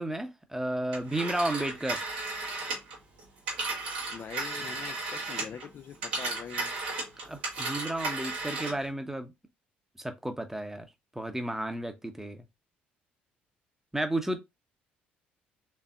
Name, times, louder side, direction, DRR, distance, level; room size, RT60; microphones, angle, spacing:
voice 1, 0.0-2.0 7.3-9.3 10.0-10.9 11.1-12.4 13.9-14.4, right 1 dB, 5° right, 0.8 m, -32 dB
Telephone, 0.9-5.6 5.9-8.9, right 3 dB, 75° right, 1.5 m, -34 dB
voice 2, 4.1-6.7, left 7 dB, 40° left, 0.4 m, -43 dB
4.2 x 3.2 x 2.4 m
figure-of-eight pair, 50°, 5 cm